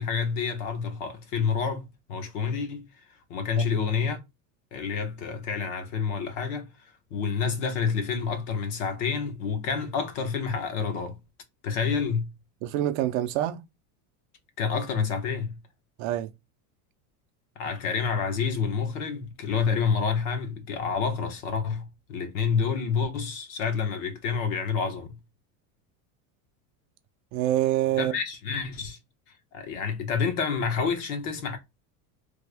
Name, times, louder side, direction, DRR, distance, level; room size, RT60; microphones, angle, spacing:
voice 1, 0.0-2.9 3.3-4.2 4.7-11.2 11.6-12.3 14.6-15.6 17.6-25.2 28.0-29.0 29.5-31.6, left 6 dB, 60° left, 1.1 m, -28 dB
voice 2, 12.6-13.6 16.0-16.3 27.3-28.2, right 13 dB, 50° right, 0.5 m, -26 dB
3.4 x 2.1 x 3.3 m
supercardioid pair, 155°, 45 cm